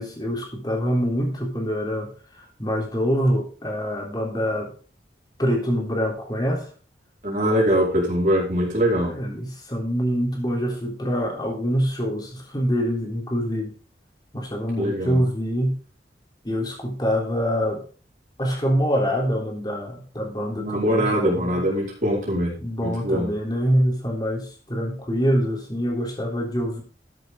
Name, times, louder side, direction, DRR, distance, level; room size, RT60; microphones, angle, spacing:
voice 1, 0.0-4.7 5.4-6.7 9.0-13.7 14.3-15.7 16.4-17.8 18.4-21.6 22.6-26.8, equal, 25° left, 0 dB, 3.6 m, -25 dB
voice 2, 7.2-9.1 14.8-15.2 20.6-22.6 22.8-23.3, equal, 45° right, -4 dB, 5.1 m, -22 dB
13.5 x 7.8 x 3.9 m, 0.38 s
head